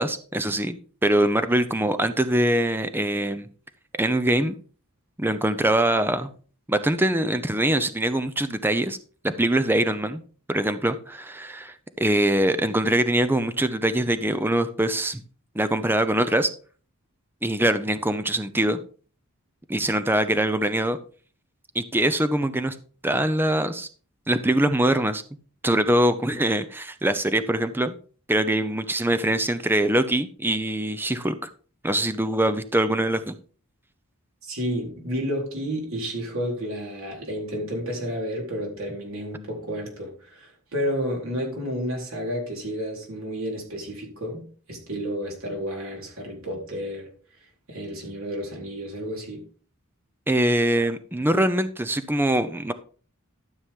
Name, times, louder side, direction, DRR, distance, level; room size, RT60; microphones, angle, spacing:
voice 1, 0.0-3.5 4.0-4.6 5.2-6.3 6.7-9.0 9.2-10.2 10.5-15.2 15.5-16.5 17.4-18.8 19.7-21.0 21.7-22.8 23.0-23.9 24.3-25.2 25.6-28.0 28.3-31.4 31.8-33.3 50.3-52.7, right 1 dB, 10° right, 0.6 m, -23 dB
voice 2, 34.4-47.1 47.7-49.4, equal, 70° right, 4.1 m, -31 dB
12.5 x 7.2 x 3.7 m
head